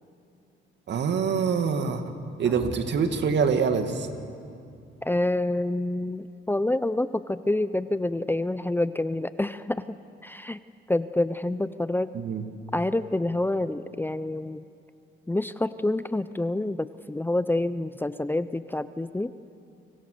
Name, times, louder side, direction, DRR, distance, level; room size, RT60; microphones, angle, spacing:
voice 1, 0.9-2.0 2.4-4.1 12.1-12.4, right 6 dB, 65° right, 6 dB, 2.4 m, -25 dB
sound 1, 2.4-4.7, equal, 10° right, 4.4 m, -41 dB
voice 2, 5.0-9.8 10.2-10.6 10.9-12.1 12.7-14.6 15.3-19.3, left 1 dB, 10° left, 13 dB, 0.7 m, -27 dB
30.0 x 25.0 x 6.9 m, 2.4 s
cardioid pair, 90°, 20 cm